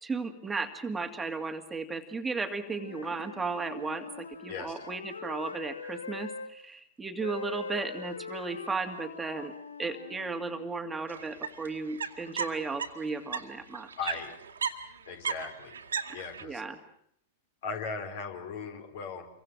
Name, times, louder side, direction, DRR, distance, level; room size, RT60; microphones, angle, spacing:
voice 1, 0.0-9.5 9.8-13.9 16.4-16.8, right 4 dB, 10° right, 6 dB, 2.2 m, -35 dB
Wind instrument woodwind instrument, 2.6-6.5 7.2-10.7, left 4 dB, 80° left, 1.4 m, -42 dB
voice 2, 4.5-4.8 14.0-14.4 15.1-15.8 16.1-16.6 17.6-19.3, left 5 dB, 55° left, 6 dB, 4.5 m, -38 dB
sound 1, 11.1-13.4 13.7-16.4, right 6 dB, 75° right, 2.3 m, -35 dB
28.5 x 24.0 x 7.6 m, 0.71 s
figure-of-eight pair, 95°, 0 cm